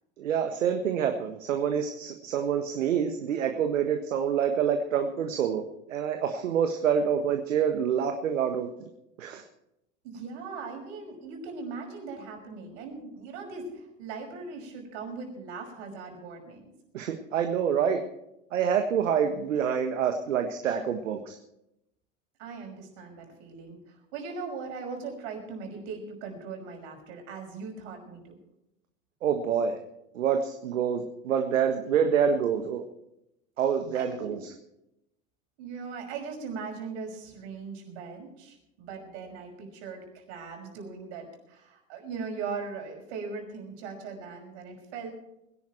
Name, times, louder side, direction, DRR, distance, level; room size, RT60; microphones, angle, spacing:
voice 1, 0.2-5.6 5.9-8.9 9.2-9.4 16.9-18.0 18.5-21.4 29.2-29.8 30.1-32.8 33.6-34.5, right 7 dB, 75° right, 5 dB, 1.6 m, -27 dB
voice 2, 10.0-16.7 22.4-28.4 33.9-34.4 35.6-45.1, right 4 dB, 60° right, 2 dB, 5.9 m, -39 dB
22.0 x 11.0 x 4.5 m, 0.84 s
hypercardioid pair, 85°, 38 cm